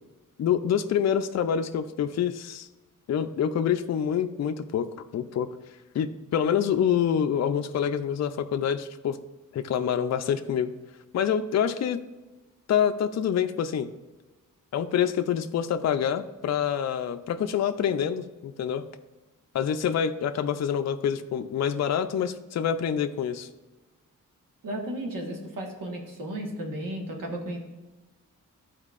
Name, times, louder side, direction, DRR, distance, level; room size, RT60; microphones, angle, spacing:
voice 1, 0.4-2.7 3.1-4.9 5.1-5.5 5.9-9.2 9.5-10.7 11.1-12.0 12.7-13.9 14.7-18.8 19.5-23.5, left 8 dB, 55° left, 8 dB, 0.5 m, -26 dB
voice 2, 24.6-27.6, right 1 dB, 80° right, 0 dB, 1.5 m, -34 dB
12.5 x 4.4 x 2.5 m, 1.2 s
wide cardioid pair, 120°, 32 cm